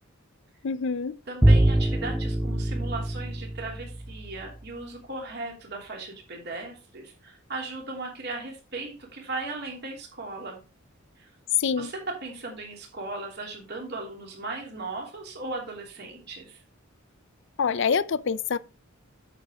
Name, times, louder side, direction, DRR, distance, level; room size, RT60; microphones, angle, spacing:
voice 1, 0.6-1.2 11.6-11.9 17.6-18.6, left 6 dB, 60° left, 0.5 m, -26 dB
voice 2, 1.3-10.6 11.2-11.3 11.8-16.6, right 3 dB, 50° right, 2.9 m, -37 dB
Bowed string instrument, 1.4-4.5, right 1 dB, 5° right, 0.4 m, -23 dB
9.0 x 6.8 x 3.6 m
head